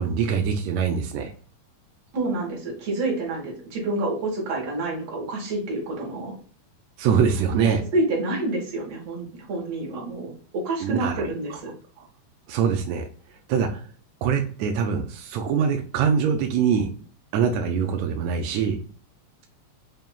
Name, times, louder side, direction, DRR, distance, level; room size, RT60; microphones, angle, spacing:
voice 1, 0.0-1.3 7.0-7.8 10.8-11.6 12.5-13.0 13.5-13.8 14.2-16.9 17.3-18.8, right 7 dB, 80° right, 4 dB, 1.6 m, -23 dB
voice 2, 2.1-6.3 7.9-11.7, right 2 dB, 55° right, -2 dB, 2.5 m, -28 dB
5.5 x 2.9 x 2.2 m, 0.43 s
omnidirectional pair, 3.7 m